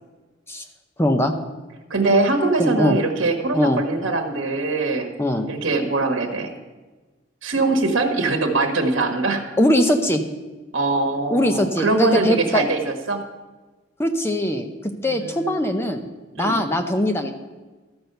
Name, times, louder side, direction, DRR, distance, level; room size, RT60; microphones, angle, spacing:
voice 1, 1.0-1.3 2.6-3.0 3.5-3.8 5.2-5.5 9.6-10.2 11.3-12.6 14.0-16.1 16.4-17.3, equal, 10° left, 6 dB, 0.7 m, -21 dB
voice 2, 1.9-5.1 5.5-6.5 7.4-9.4 10.7-13.2 15.1-15.5 16.3-16.6, right 3 dB, 65° right, 4 dB, 1.4 m, -22 dB
13.0 x 6.1 x 6.7 m, 1.2 s
head